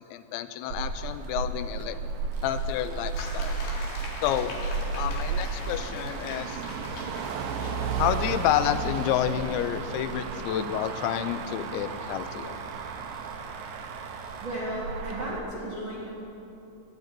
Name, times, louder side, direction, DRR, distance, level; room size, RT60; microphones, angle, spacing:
voice 1, 0.0-2.0 2.4-3.6 4.2-4.5 5.0-6.6 8.0-12.6, left 11 dB, 90° left, 11 dB, 2.9 m, -29 dB
Motor vehicle (road), 0.7-15.4, right 4 dB, 85° right, 2.0 m, -33 dB
Domestic sounds home sounds, 2.3-14.7, right 5 dB, 70° right, 2.4 m, -55 dB
sound 1, 3.1-9.6, left 2 dB, 65° left, 3.8 m, -42 dB
voice 2, 14.4-16.1, equal, 40° right, -7 dB, 2.1 m, -34 dB
18.5 x 11.5 x 4.5 m, 3.0 s
omnidirectional pair, 5.1 m